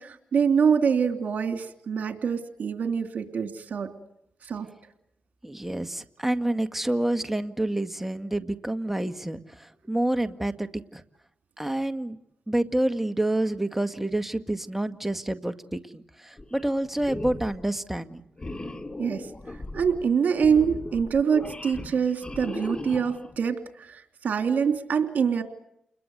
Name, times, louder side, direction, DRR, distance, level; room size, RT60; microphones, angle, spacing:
voice 1, 0.0-3.9 4.4-4.7 19.0-19.3 19.7-25.4, right 6 dB, 70° right, 6 dB, 3.0 m, -25 dB
voice 2, 5.4-11.0 11.6-12.2 12.5-18.2, right 1 dB, 10° right, 8 dB, 1.8 m, -28 dB
sound 1, 16.4-16.7 17.0-17.6 18.4-23.4, left 2 dB, 30° left, 2.6 m, -38 dB
29.5 x 22.0 x 8.0 m, 0.76 s
cardioid pair, 50°, 3 cm